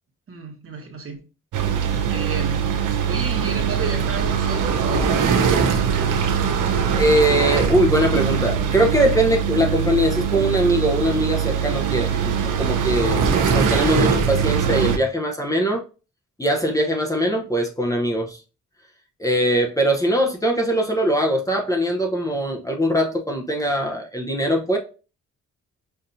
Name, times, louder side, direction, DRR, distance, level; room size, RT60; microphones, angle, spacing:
voice 1, 0.3-1.2 2.1-2.7 3.0-5.4 5.8-6.2, right 4 dB, 45° right, 1.3 m, -32 dB
sound 1, 1.5-15.0, right 7 dB, 85° right, 0.7 m, -21 dB
voice 2, 7.0-15.8 16.4-18.4 19.2-24.8, equal, 10° left, 0.7 m, -21 dB
5.7 x 2.7 x 2.6 m
cardioid pair, 85°, 30 cm